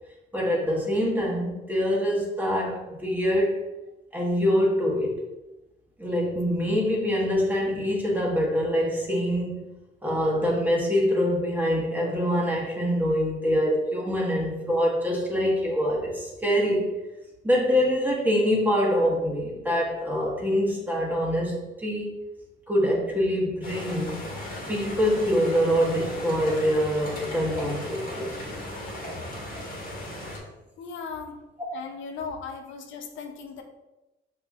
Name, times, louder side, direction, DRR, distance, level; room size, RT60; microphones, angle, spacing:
voice 1, 0.3-3.6 4.1-5.2 6.0-9.6 10.0-16.9 17.4-22.1 22.7-24.2 24.7-28.3, equal, 10° right, -3 dB, 1.2 m, -25 dB
sound 1, 23.6-30.4, left 1 dB, 45° left, 1.5 m, -36 dB
voice 2, 30.8-31.4 31.7-33.6, left 5 dB, 75° left, 5 dB, 0.5 m, -37 dB
5.6 x 2.9 x 2.3 m, 1.0 s
cardioid pair, 90°, 20 cm